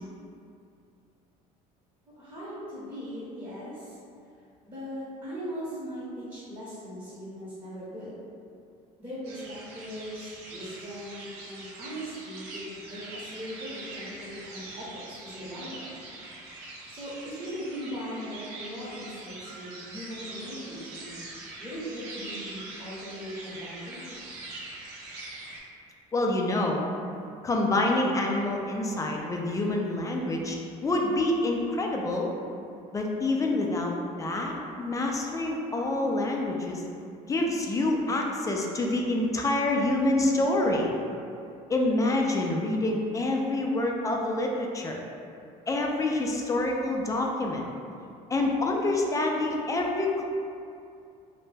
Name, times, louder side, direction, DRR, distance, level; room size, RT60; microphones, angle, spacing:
voice 1, 2.2-4.0 4.6-8.1 9.0-15.9 16.9-21.2 21.6-24.3, equal, 25° right, -10 dB, 0.8 m, -39 dB
sound 1, 9.2-25.6, right 2 dB, 75° right, 0.5 m, -43 dB
voice 2, 26.1-26.8 27.4-32.3 32.9-33.9 34.2-36.8 37.3-40.9 41.7-45.0 45.7-47.7 48.3-50.2, left 2 dB, 20° left, 0 dB, 0.3 m, -27 dB
2.1 x 2.0 x 3.2 m, 2.5 s
supercardioid pair, 85°, 17 cm